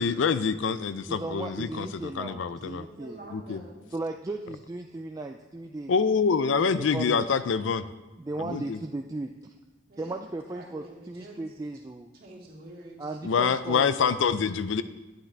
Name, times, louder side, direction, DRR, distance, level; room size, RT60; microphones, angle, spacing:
voice 1, 0.0-2.8 3.3-3.6 5.9-7.8 8.4-8.8 13.2-14.8, left 5 dB, 75° left, 13 dB, 0.4 m, -26 dB
voice 2, 1.1-3.2 3.9-5.9 6.8-7.3 8.2-9.5 10.0-12.1 13.0-13.9, right 2 dB, 15° right, 3 dB, 0.3 m, -36 dB
voice 3, 2.8-3.9 9.9-11.4 12.1-13.2, right 1 dB, 50° right, -3 dB, 2.3 m, -47 dB
9.7 x 9.1 x 3.3 m, 1.1 s
head